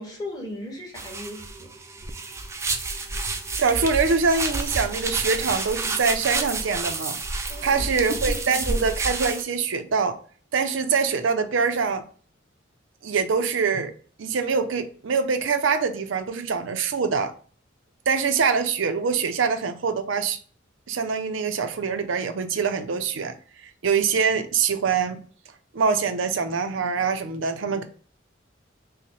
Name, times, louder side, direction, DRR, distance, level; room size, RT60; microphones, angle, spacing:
voice 1, 0.0-1.7 7.5-8.2, left 1 dB, 20° left, 1.0 m, -37 dB
sound 1, 1.0-9.4, right 3 dB, 15° right, 0.3 m, -30 dB
voice 2, 3.6-7.2 7.6-10.2 10.5-12.0 13.0-13.9 14.2-17.3 18.1-20.4 20.9-23.4 23.6-25.2 25.7-27.8, right 5 dB, 80° right, 0.5 m, -24 dB
5.6 x 2.1 x 3.0 m
head